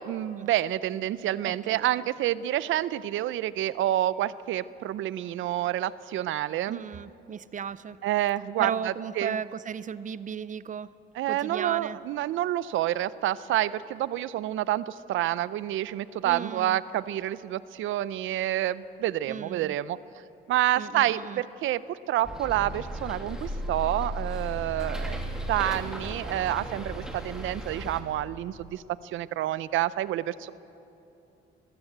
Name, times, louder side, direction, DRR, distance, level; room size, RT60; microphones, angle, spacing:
voice 1, 0.0-6.8 8.0-8.7 9.2-9.4 11.2-20.0 20.5-25.2 25.5-30.5, right 13 dB, 80° right, 17 dB, 0.6 m, -28 dB
voice 2, 1.4-2.1 6.7-8.0 8.6-10.9 11.3-12.0 16.2-16.8 19.3-19.8 20.8-21.4, right 7 dB, 40° right, 17 dB, 0.6 m, -35 dB
Bus, 22.2-28.0, equal, 5° right, 2.6 m, -35 dB
21.0 x 15.5 x 7.9 m, 2.9 s
cardioid pair, 90°, 20 cm